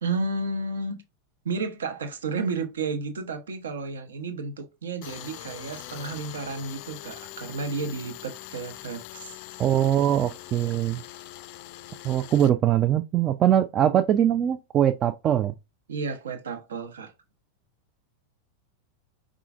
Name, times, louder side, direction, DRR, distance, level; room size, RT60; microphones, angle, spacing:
voice 1, 0.0-1.0 1.4-9.4 15.9-17.1, right 3 dB, 65° right, 0.9 m, -32 dB
Tools, 5.0-12.5, left 14 dB, 45° left, 0.4 m, -42 dB
voice 2, 9.6-11.0 12.0-15.5, right 10 dB, 30° right, 0.3 m, -22 dB
4.8 x 3.7 x 2.4 m
figure-of-eight pair, 90°, 0 cm